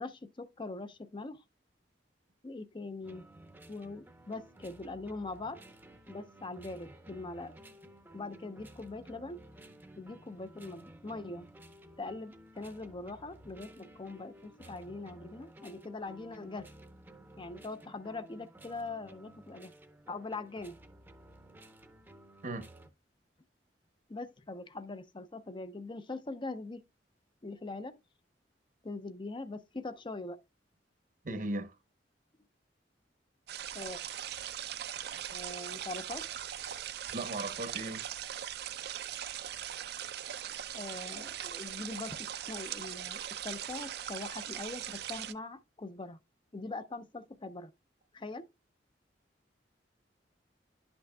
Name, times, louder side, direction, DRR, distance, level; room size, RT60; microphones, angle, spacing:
voice 1, 0.0-1.4 2.4-3.3 3.7-5.6 6.1-7.5 8.1-9.4 10.0-11.5 12.0-16.7 17.4-19.7 20.1-20.8 24.1-26.8 27.4-28.0 28.8-30.4 33.7-34.0 35.3-36.4 40.7-46.2 46.5-47.7 48.1-48.5, left 3 dB, 25° left, 0.5 m, -42 dB
sound 1, 3.0-22.9, right 1 dB, 10° right, 0.7 m, -54 dB
voice 2, 31.2-31.7 37.1-38.0, right 2 dB, 45° right, 0.9 m, -37 dB
sound 2, 33.5-45.3, right 10 dB, 60° right, 0.5 m, -40 dB
11.0 x 6.0 x 2.2 m
head